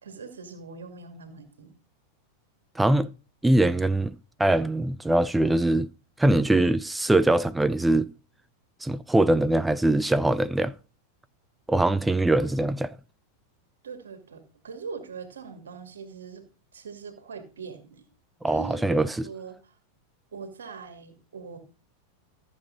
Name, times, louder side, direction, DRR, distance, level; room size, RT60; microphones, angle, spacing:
voice 1, 0.0-1.7 12.4-12.5 13.8-16.4 16.7-18.1 18.5-19.7 20.3-21.6, right 5 dB, 65° right, 2.3 m, -41 dB
voice 2, 2.8-3.1 3.4-4.1 4.4-5.9 6.2-8.1 8.8-10.7 11.7-12.8 18.4-19.1, right 2 dB, 5° right, 0.4 m, -22 dB
14.0 x 7.4 x 4.0 m
figure-of-eight pair, 90°, 0 cm